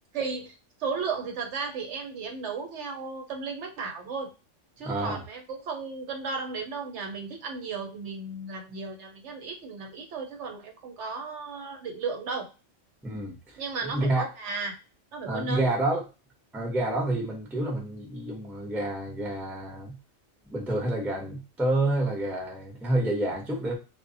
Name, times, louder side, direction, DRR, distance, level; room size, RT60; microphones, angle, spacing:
voice 1, 0.1-0.5 0.8-4.3 4.8-12.5 13.6-14.8 15.1-15.8, right 4 dB, 70° right, 4 dB, 0.9 m, -35 dB
voice 2, 4.8-5.2 13.0-14.2 15.3-16.0 16.5-20.0 20.5-23.7, right 1 dB, ahead, -1 dB, 0.5 m, -29 dB
2.1 x 2.0 x 3.7 m, 0.30 s
omnidirectional pair, 1.3 m